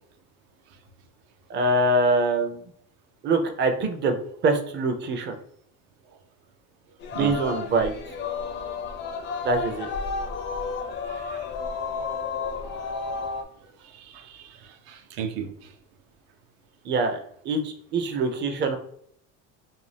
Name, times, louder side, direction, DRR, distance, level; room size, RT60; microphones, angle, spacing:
voice 1, 1.5-2.6 3.2-4.2 4.4-5.4 7.1-7.9 9.4-9.9 16.8-17.2 17.4-18.8, right 2 dB, 30° right, 5 dB, 0.5 m, -24 dB
Singing, 7.0-13.4, left 4 dB, 35° left, 0.4 m, -32 dB
voice 2, 11.0-11.5 13.6-15.8 18.1-18.2, right 8 dB, 70° right, 7 dB, 0.6 m, -37 dB
2.6 x 2.2 x 3.3 m, 0.66 s
cardioid pair, 120°, 37 cm